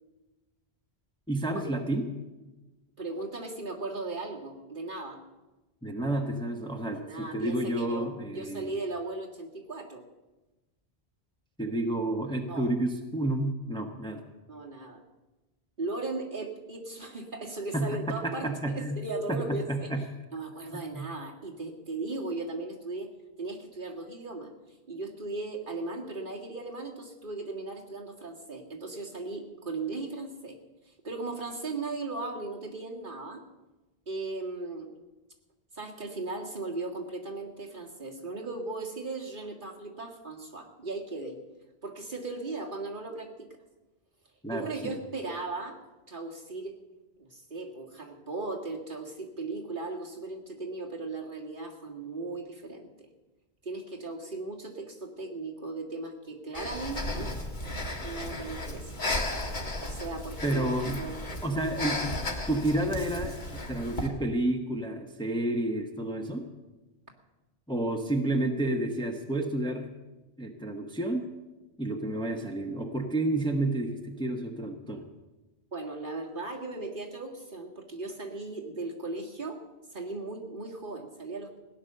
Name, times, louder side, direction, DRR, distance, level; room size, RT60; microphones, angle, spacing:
voice 1, 1.3-2.1 5.8-8.7 11.6-14.2 17.7-19.0 19.3-20.0 20.9-21.1 44.4-45.0 60.4-61.0 61.4-62.2 62.5-66.5 67.7-69.9 70.4-71.3 71.8-75.1, right 1 dB, 5° left, 3 dB, 1.1 m, -30 dB
voice 2, 3.0-5.2 6.9-10.0 12.5-12.7 14.5-15.0 15.8-20.0 20.3-23.1 23.4-24.5 24.9-30.6 30.8-33.4 34.1-34.9 35.7-41.4 41.8-43.5 44.5-45.8 46.1-46.8 47.2-53.1 53.6-57.3 58.0-59.1 59.8-61.2 75.7-79.6 79.9-81.6, right 3 dB, 50° right, -1 dB, 2.1 m, -37 dB
Breathing, 56.5-64.1, left 1 dB, 45° left, 1.8 m, -35 dB
17.0 x 10.0 x 6.8 m, 1.1 s
omnidirectional pair, 1.1 m